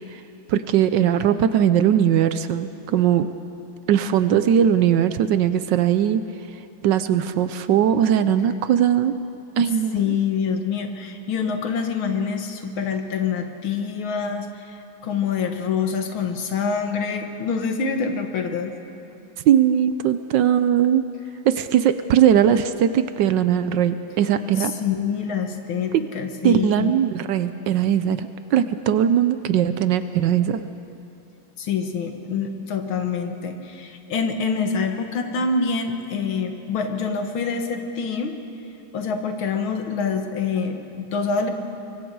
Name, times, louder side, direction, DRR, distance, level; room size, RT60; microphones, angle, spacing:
voice 1, 0.5-3.3 3.9-6.2 6.8-9.1 9.6-10.1 19.5-21.0 21.4-24.7 25.9-26.0 26.4-30.6, right 9 dB, 70° right, 11 dB, 1.2 m, -19 dB
voice 2, 9.9-18.7 24.6-26.9 31.6-38.3 38.9-41.5, left 5 dB, 85° left, 5 dB, 2.2 m, -26 dB
24.0 x 23.0 x 4.7 m, 2.7 s
omnidirectional pair, 2.2 m